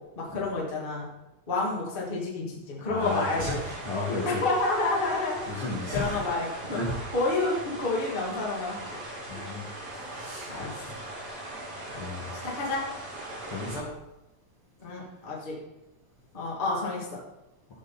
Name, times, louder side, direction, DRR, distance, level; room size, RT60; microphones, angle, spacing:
voice 1, 0.1-1.1 1.5-3.6 4.2-5.5 5.9-6.8 7.1-8.8 10.5-10.7 12.5-12.8 14.8-15.5 16.3-17.2, left 3 dB, 40° left, -4 dB, 0.7 m, -29 dB
voice 2, 2.8-4.4 5.5-7.0 9.3-9.7 9.9-11.0 11.9-12.5 13.5-13.9, left 2 dB, 85° left, -6 dB, 1.2 m, -34 dB
sound 1, 3.0-13.8, right 1 dB, 30° right, 2.2 m, -40 dB
12.5 x 6.6 x 4.2 m, 0.96 s
omnidirectional pair, 5.9 m